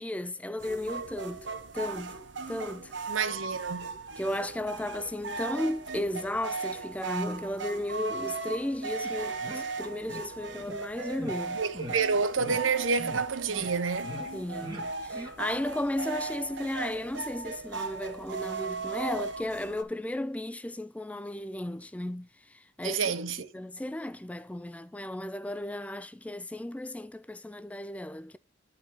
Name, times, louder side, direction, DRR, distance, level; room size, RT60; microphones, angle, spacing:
voice 1, 0.0-1.5 1.7-2.2 2.5-2.9 4.2-11.6 14.3-23.0 23.5-28.4, left 1 dB, 5° left, 0.3 m, -34 dB
sound 1, 0.6-19.8, right 4 dB, 65° right, 1.0 m, -37 dB
voice 2, 3.1-3.9 11.5-14.2 22.8-23.5, right 5 dB, 90° right, 0.9 m, -29 dB
sound 2, 9.0-9.1 9.4-9.7 10.1-10.2 10.6-10.7 11.2-11.4 11.7-12.0 12.4-12.6 12.9-13.2 13.5-13.7 14.0-14.3 14.6-14.8 15.1-15.3, equal, 25° right, 2.2 m, -40 dB
11.0 x 4.3 x 4.5 m
head